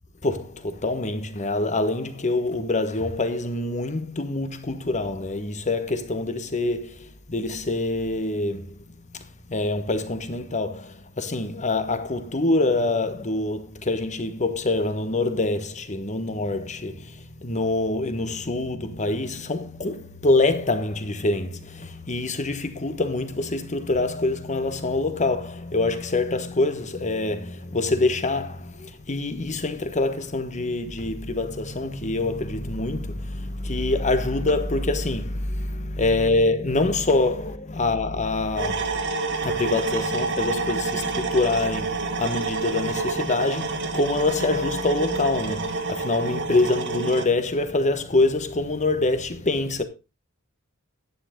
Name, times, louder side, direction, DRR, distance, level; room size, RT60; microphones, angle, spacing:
voice 1, 0.2-8.8 9.1-9.2 9.5-49.8, left 2 dB, 35° left, 1.3 m, -25 dB
sound 1, 38.6-47.3, right 3 dB, 55° right, 1.5 m, -28 dB
10.5 x 9.3 x 3.8 m
head